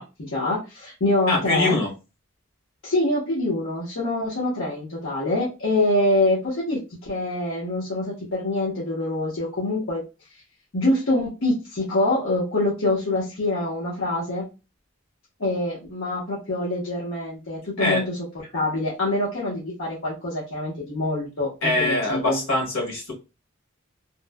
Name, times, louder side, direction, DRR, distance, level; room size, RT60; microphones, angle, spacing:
voice 1, 0.0-1.8 2.8-10.0 10.7-14.4 15.4-22.4, left 2 dB, 70° left, -7 dB, 0.8 m, -25 dB
voice 2, 1.3-1.9 17.8-18.0 21.6-23.1, left 2 dB, 90° left, -1 dB, 1.4 m, -23 dB
3.0 x 2.0 x 2.2 m, 0.28 s
head